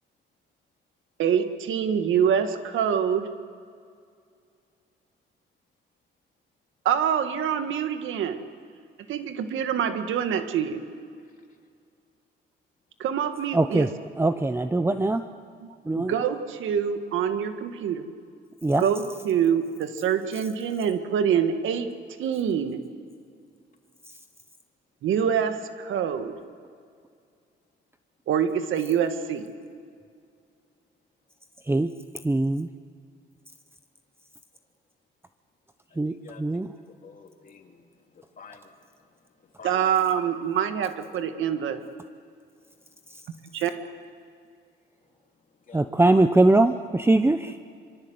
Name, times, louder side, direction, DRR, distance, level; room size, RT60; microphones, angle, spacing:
voice 1, 1.2-3.3 6.8-8.4 9.1-10.8 13.0-13.9 15.6-15.7 16.0-18.0 18.8-21.9 22.2-22.8 25.0-26.3 28.3-29.5 39.6-41.8 43.6-43.7, right 8 dB, 80° right, 8 dB, 1.8 m, -25 dB
voice 2, 13.5-13.9 14.2-15.2 15.9-16.1 18.6-18.8 31.7-31.9 32.2-32.7 36.0-36.1 36.4-36.7 45.7-47.5, right 2 dB, 10° right, 9 dB, 0.8 m, -21 dB
voice 3, 35.9-37.9 38.1-38.7 39.6-39.8 45.7-46.3 47.4-47.5, left 6 dB, 45° left, 3 dB, 3.1 m, -49 dB
25.0 x 25.0 x 8.0 m, 2.3 s
cardioid pair, 90°, 20 cm